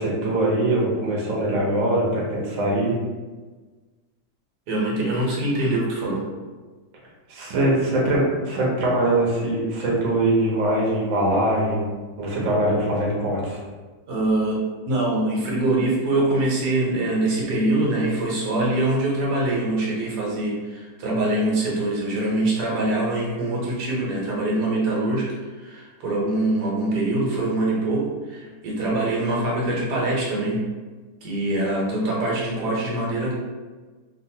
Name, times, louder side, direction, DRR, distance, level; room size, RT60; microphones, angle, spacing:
voice 1, 0.0-3.0 7.3-11.9 12.2-13.6, right 1 dB, 60° right, -4 dB, 1.0 m, -22 dB
voice 2, 4.7-6.2 14.1-25.3 25.5-30.6 31.2-33.3, right 2 dB, 85° right, -5 dB, 1.4 m, -24 dB
2.9 x 2.5 x 2.7 m, 1.3 s
omnidirectional pair, 1.7 m